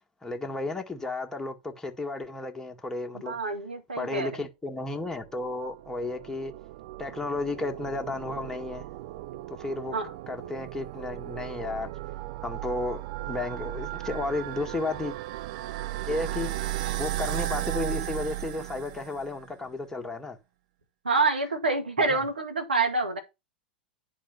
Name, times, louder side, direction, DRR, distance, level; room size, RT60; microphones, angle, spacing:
voice 1, 0.2-3.4 4.0-6.5 7.0-8.9 9.5-9.9 10.3-12.0 12.4-15.2 16.1-16.5 17.0-20.4 22.0-22.2, left 2 dB, 10° left, 1.8 m, -33 dB
voice 2, 3.2-4.4 9.9-10.1 21.0-23.2, right 3 dB, 80° right, 2.0 m, -27 dB
sound 1, 5.2-19.4, right 15 dB, 55° right, 0.5 m, -36 dB
10.5 x 4.3 x 5.6 m
figure-of-eight pair, 95°, 5 cm